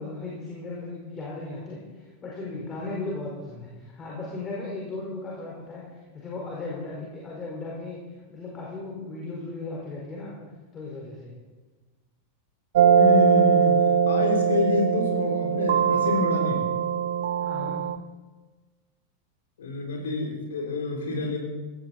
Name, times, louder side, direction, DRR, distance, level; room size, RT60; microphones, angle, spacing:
voice 1, 0.0-8.0 8.3-10.4 10.7-11.3 17.4-17.8, left 3 dB, 20° left, -4 dB, 4.6 m, -36 dB
sound 1, 12.8-18.0, right 7 dB, 60° right, 0.7 m, -21 dB
voice 2, 13.0-13.7 14.1-16.6 19.6-21.4, left 3 dB, 65° left, 1 dB, 3.5 m, -28 dB
17.0 x 16.5 x 4.2 m, 1.3 s
figure-of-eight pair, 90°, 0 cm